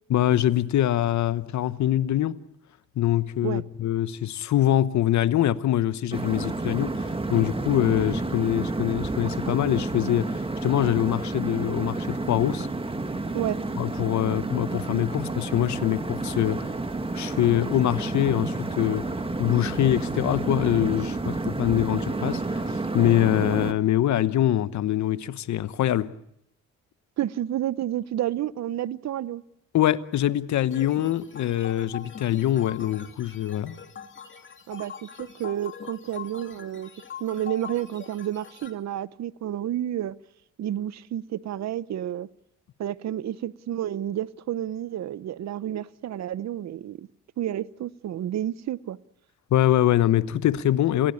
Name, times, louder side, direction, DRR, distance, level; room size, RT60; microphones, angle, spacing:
voice 1, 0.1-2.4 3.0-12.7 13.8-16.6 17.1-19.1 19.4-26.1 29.7-33.8 49.5-51.1, left 12 dB, 70° left, 1.1 m, -24 dB
sound 1, 6.1-23.7, right 2 dB, 20° right, 2.0 m, -30 dB
voice 2, 27.2-29.4 34.7-36.9 37.2-40.1 40.6-42.3 42.8-47.1 47.4-49.0, right 11 dB, 60° right, 0.9 m, -30 dB
sound 2, 30.7-38.7, left 7 dB, 40° left, 3.1 m, -43 dB
28.5 x 17.0 x 8.5 m
cardioid pair, 90°, 30 cm